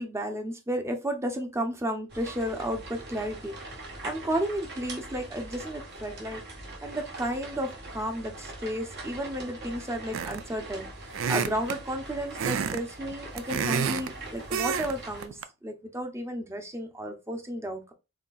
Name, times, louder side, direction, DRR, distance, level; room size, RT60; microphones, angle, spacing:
voice 1, 0.0-3.5 4.0-6.4 6.8-10.9 11.3-17.9, equal, 15° right, 5 dB, 0.8 m, -33 dB
sound 1, 2.1-15.3, right 2 dB, 55° right, 1.3 m, -42 dB
sound 2, 10.1-10.5 11.1-11.8 12.4-12.8 13.1-14.1 14.5-14.9 15.2-15.4, right 6 dB, 70° right, 0.4 m, -29 dB
4.3 x 3.8 x 2.4 m, 0.26 s
head